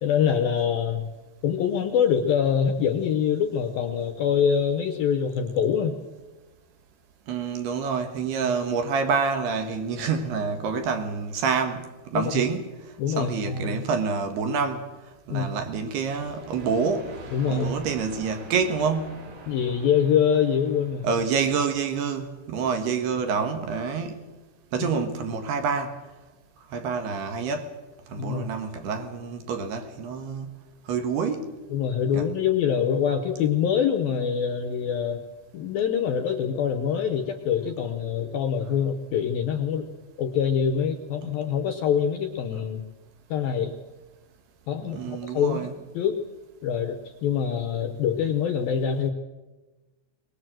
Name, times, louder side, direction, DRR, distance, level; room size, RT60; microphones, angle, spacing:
voice 1, 0.0-1.1 1.4-6.0 12.1-12.4 13.0-13.8 15.3-15.6 17.3-17.7 19.5-21.1 28.2-28.5 31.7-35.2 35.5-39.9 40.2-42.8 43.3-43.7 44.7-45.7 45.9-46.2 46.6-49.1, left 7 dB, 70° left, 2.3 m, -25 dB
voice 2, 7.3-12.7 13.1-14.9 15.3-17.1 17.5-19.3 21.0-24.2 24.7-26.0 26.7-27.7 28.1-30.5 30.9-31.6 32.1-32.3 41.2-41.3 44.8-45.7, right 5 dB, 65° right, 3.3 m, -27 dB
sound 1, 16.0-21.8, right 3 dB, 85° right, 5.9 m, -45 dB
22.5 x 20.0 x 7.7 m
omnidirectional pair, 5.4 m